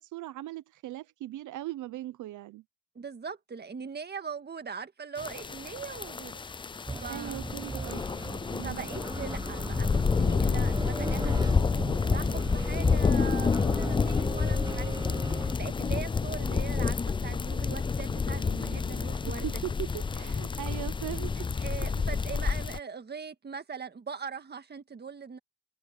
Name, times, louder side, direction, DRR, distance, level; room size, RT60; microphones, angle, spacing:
voice 1, 0.0-2.6 7.1-8.0 8.5-8.9 19.2-21.7, right 15 dB, 80° right, 0.8 m, -39 dB
voice 2, 3.0-6.7 7.0-7.4 8.6-19.6 21.6-25.4, right 6 dB, 35° right, 1.8 m, -41 dB
sound 1, 5.2-22.8, left 5 dB, 15° left, 0.4 m, -29 dB
sound 2, 6.9-15.6, right 2 dB, 15° right, 1.4 m, -38 dB
cardioid pair, 90°, 30 cm